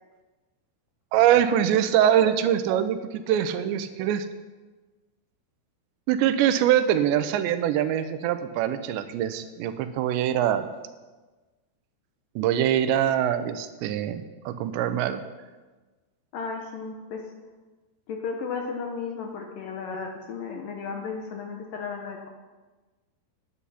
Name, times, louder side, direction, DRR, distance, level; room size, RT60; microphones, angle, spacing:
voice 1, 1.1-4.3 6.1-10.7 12.4-15.2, right 10 dB, 90° right, 10 dB, 3.0 m, -23 dB
voice 2, 16.3-17.2 18.1-22.3, left 5 dB, 70° left, 2 dB, 2.2 m, -34 dB
10.5 x 9.9 x 5.7 m, 1.3 s
omnidirectional pair, 4.9 m